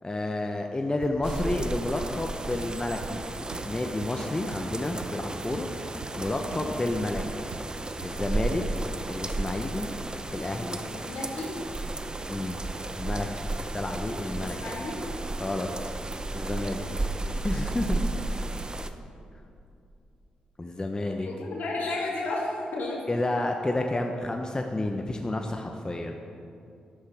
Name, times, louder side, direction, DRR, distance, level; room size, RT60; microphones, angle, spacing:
voice 1, 0.0-3.2 3.7-5.7 6.2-7.4 8.0-8.6 9.1-9.9 10.3-10.8 12.3-12.6 13.0-14.6 15.4-15.7 16.3-16.8 17.4-18.0 20.6-21.3 23.1-26.2, left 2 dB, 25° left, 3 dB, 0.9 m, -30 dB
sound 1, 1.0-9.0, right 7 dB, 75° right, 0.6 m, -43 dB
sound 2, 1.2-18.9, right 2 dB, 25° right, 0.7 m, -34 dB
voice 2, 10.8-11.5 14.4-15.0 16.9-17.0 17.3-17.6 21.2-23.0, left 2 dB, 70° left, -3 dB, 2.5 m, -33 dB
12.5 x 10.0 x 3.5 m, 2.6 s
supercardioid pair, 40°, 3 cm